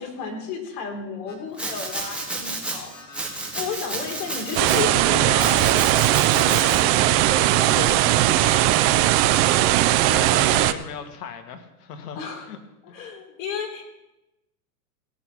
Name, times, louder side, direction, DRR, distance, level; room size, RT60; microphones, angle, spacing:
voice 1, 0.0-2.9 3.5-5.8 6.4-9.0 12.2-12.5 12.9-13.9, left 5 dB, 55° left, 1 dB, 3.5 m, -33 dB
Alarm, 1.3-7.0 7.3-7.9, left 2 dB, 20° left, 2.6 m, -45 dB
Domestic sounds home sounds, 1.6-2.8 3.1-4.8 5.4-6.8, right 2 dB, ahead, 2.0 m, -31 dB
sound 1, 4.6-10.7, right 15 dB, 30° right, 0.4 m, -19 dB
voice 2, 10.0-12.6 12.9-13.2, left 7 dB, 75° left, 7 dB, 1.9 m, -37 dB
17.0 x 6.4 x 5.8 m, 0.94 s
hypercardioid pair, 120°, 47 cm